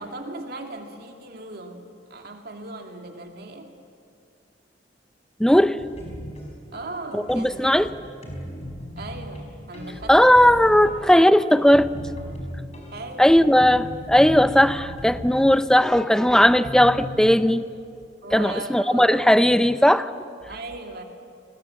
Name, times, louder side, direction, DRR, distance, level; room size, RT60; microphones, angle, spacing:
voice 1, 0.0-3.7 6.7-8.0 9.0-11.0 12.9-13.5 18.2-19.1 19.4-19.5 20.5-21.0, right 2 dB, 60° right, 4 dB, 2.4 m, -38 dB
voice 2, 5.4-5.8 7.1-7.9 10.1-11.9 13.2-17.7 18.3-20.1, equal, 5° left, 13 dB, 0.6 m, -17 dB
sound 1, 5.8-17.3, equal, 35° left, 5.2 m, -38 dB
28.5 x 21.0 x 7.6 m, 2.5 s
head